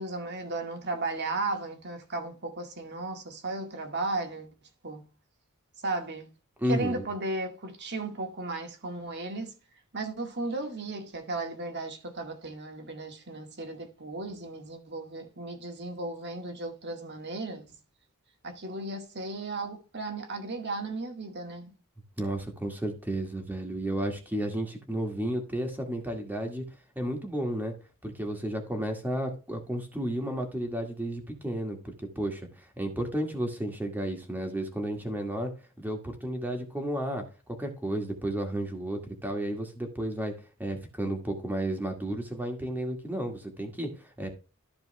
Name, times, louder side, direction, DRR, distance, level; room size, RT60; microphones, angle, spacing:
voice 1, 0.0-4.5 4.8-5.1 5.8-6.3 6.7-9.5 9.9-17.7 18.4-21.7, right 2 dB, 50° right, 2.0 m, -35 dB
voice 2, 6.6-7.0 22.2-26.6 27.0-27.7 28.0-32.4 32.8-35.5 35.8-37.2 37.6-40.3 40.6-44.3, right 1 dB, 10° right, 2.0 m, -32 dB
13.5 x 4.7 x 3.3 m
head